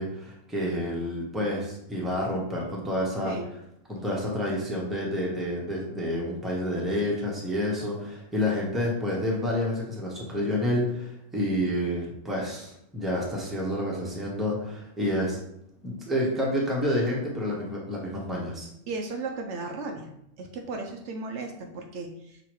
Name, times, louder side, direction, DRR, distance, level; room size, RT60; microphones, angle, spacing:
voice 1, 0.0-3.4 3.9-15.4 15.8-18.7, left 1 dB, ahead, -4 dB, 0.9 m, -29 dB
voice 2, 18.9-20.1 20.4-22.4, right 3 dB, 70° right, 2 dB, 0.9 m, -35 dB
6.0 x 2.9 x 3.0 m, 0.76 s
omnidirectional pair, 1.3 m